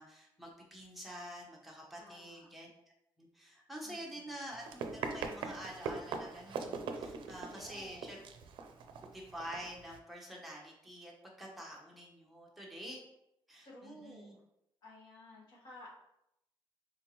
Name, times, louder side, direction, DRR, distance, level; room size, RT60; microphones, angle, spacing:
voice 1, 0.0-2.7 3.2-8.2 9.1-11.1 11.4-13.0 13.5-14.3, equal, ahead, -3 dB, 0.9 m, -47 dB
voice 2, 2.0-2.5 3.8-4.3 7.4-8.2 13.6-14.4 14.8-15.9, left 2 dB, 50° left, -5 dB, 1.6 m, -54 dB
Run, 4.5-10.0, right 5 dB, 65° right, 0.5 m, -42 dB
4.2 x 3.9 x 3.0 m, 0.81 s
cardioid pair, 175°, 9 cm